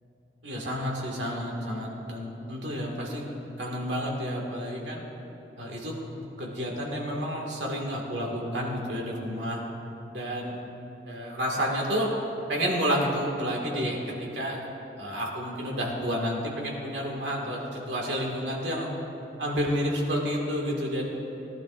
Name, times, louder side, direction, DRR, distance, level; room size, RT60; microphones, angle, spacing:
voice 1, 0.4-3.3 3.6-5.0 5.6-9.6 10.1-10.6 11.1-12.1 12.5-14.6 15.0-18.9 19.4-21.1, equal, 90° right, -2 dB, 2.1 m, -30 dB
17.5 x 12.0 x 2.6 m, 3.0 s
head